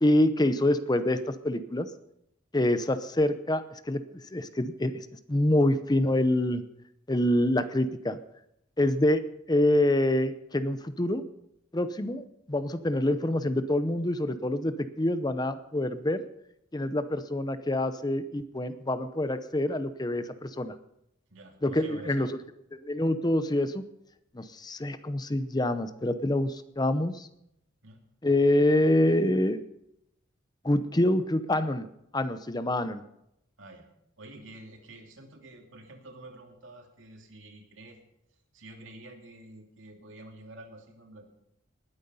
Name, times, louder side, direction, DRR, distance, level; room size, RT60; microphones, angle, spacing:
voice 1, 0.0-1.9 2.5-6.6 7.1-8.2 8.8-11.2 11.7-16.2 16.7-20.7 21.6-22.4 22.8-23.8 24.3-27.3 28.2-29.6 30.6-31.9 32.1-33.0, left 1 dB, 20° left, 12 dB, 0.7 m, -26 dB
voice 2, 21.3-22.3 27.8-28.0 33.6-33.9 34.2-38.0 38.5-41.3, right 1 dB, 85° right, 3 dB, 2.8 m, -48 dB
19.5 x 9.5 x 5.5 m, 0.80 s
head